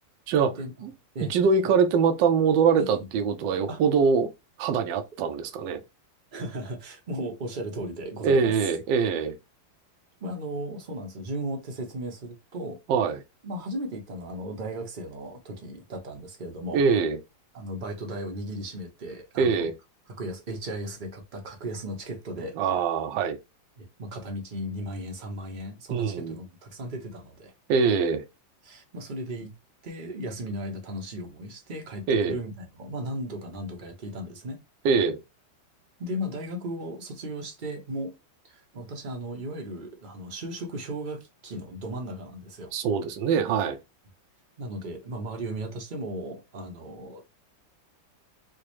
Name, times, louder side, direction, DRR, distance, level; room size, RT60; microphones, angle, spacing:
voice 1, 1.2-4.3 4.6-5.8 8.2-9.4 12.9-13.2 16.7-17.2 19.4-19.7 22.6-23.4 25.9-26.4 27.7-28.3 32.1-32.4 34.8-35.2 42.7-43.8, right 5 dB, 75° right, 1.3 m, -23 dB
voice 2, 6.3-8.5 10.2-12.8 13.4-16.8 17.5-19.7 20.2-22.6 23.8-27.5 28.6-29.5 29.8-34.6 36.0-38.2 38.4-42.7 44.6-47.2, right 1 dB, 55° right, 0.5 m, -36 dB
4.8 x 2.0 x 2.9 m
omnidirectional pair, 2.2 m